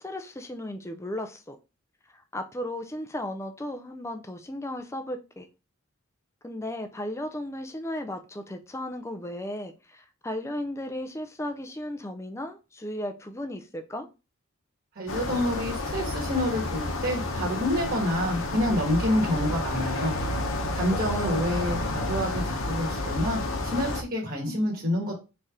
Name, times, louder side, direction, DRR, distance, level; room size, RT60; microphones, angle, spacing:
voice 1, 0.0-1.6 2.1-5.5 6.4-14.1 21.2-21.5, left 1 dB, 15° left, 0.5 m, -35 dB
voice 2, 14.9-20.1 20.7-25.3, left 1 dB, 45° right, 1.4 m, -28 dB
sound 1, 15.1-24.0, left 2 dB, 70° left, 0.8 m, -30 dB
4.1 x 3.3 x 3.6 m
head